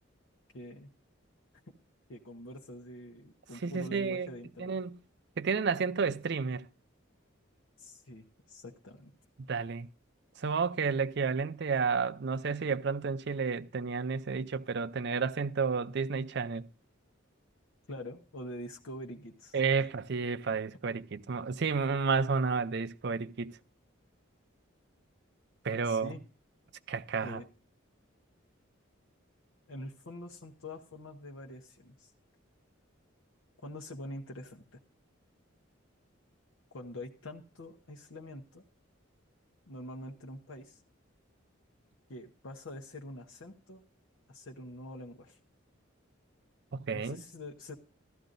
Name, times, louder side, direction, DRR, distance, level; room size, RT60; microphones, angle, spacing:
voice 1, 0.5-0.9 2.1-4.8 7.8-9.1 17.9-19.6 25.8-26.2 27.2-27.5 29.7-32.1 33.6-34.8 36.7-38.6 39.7-40.8 42.1-43.8 44.3-45.4 46.9-47.8, left 1 dB, 75° left, 1.0 m, -45 dB
voice 2, 3.6-4.3 4.6-5.0 5.4-6.7 9.5-9.9 10.4-16.6 19.5-23.6 25.6-26.1 26.9-27.4 46.7-47.2, right 5 dB, 55° right, 0.5 m, -31 dB
15.0 x 12.5 x 2.6 m
head